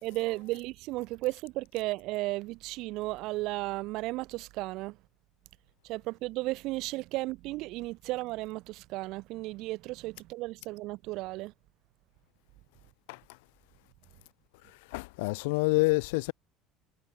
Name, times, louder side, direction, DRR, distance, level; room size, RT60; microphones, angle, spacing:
voice 1, 0.0-5.0 5.8-11.5, right 20 dB, 60° right, 2.0 m, -34 dB
voice 2, 14.9-16.3, left 26 dB, 85° left, 1.1 m, -27 dB
cardioid pair, 130°, 0 cm